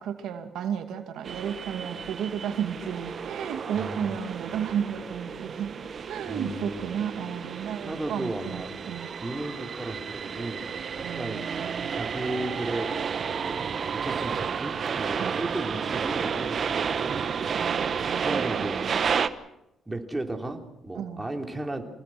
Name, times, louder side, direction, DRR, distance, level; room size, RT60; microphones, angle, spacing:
voice 1, 0.0-5.8 6.1-9.1 11.0-11.9 15.2-15.4 17.5-19.0 20.9-21.3, right 8 dB, 80° right, 6 dB, 2.4 m, -33 dB
sound 1, 1.2-19.3, right 6 dB, 50° right, 1.1 m, -31 dB
voice 2, 3.7-4.2 6.3-6.9 7.8-8.7 9.2-10.7 10.9-11.4 11.9-13.0 13.3-17.1 17.9-19.1 19.9-21.9, right 1 dB, 15° right, 3 dB, 3.3 m, -35 dB
26.0 x 19.0 x 6.2 m, 0.87 s
cardioid pair, 90°, 0 cm